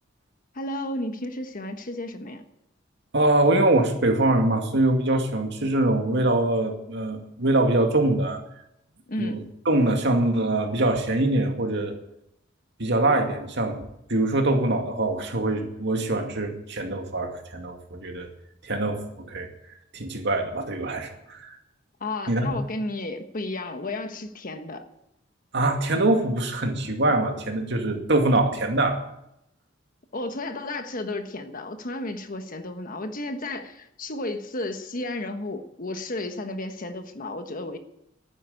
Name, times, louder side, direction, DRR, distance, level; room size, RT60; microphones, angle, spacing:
voice 1, 0.5-2.4 9.1-9.5 22.0-24.8 30.1-37.8, left 2 dB, 45° left, 7 dB, 1.4 m, -33 dB
voice 2, 3.1-8.4 9.2-12.0 12.8-13.8 14.1-18.3 18.6-19.5 19.9-21.6 22.3-22.5 25.5-29.0, right 2 dB, 65° right, 4 dB, 2.3 m, -23 dB
11.5 x 9.9 x 9.2 m, 0.81 s
head